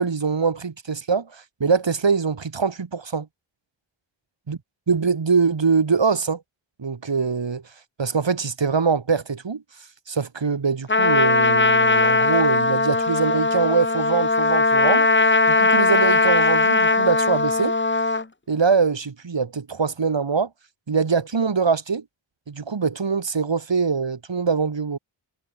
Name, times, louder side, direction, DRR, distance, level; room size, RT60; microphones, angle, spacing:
voice 1, 0.0-3.3 4.5-4.6 4.9-6.4 6.8-7.6 8.0-9.6 10.1-15.1 15.5-17.8 18.5-20.5 20.9-22.0 22.5-25.0, right 5 dB, 65° right, 6.3 m, -23 dB
Trumpet, 10.9-18.2, left 3 dB, 25° left, 2.0 m, -19 dB
wide cardioid pair, 75°, 47 cm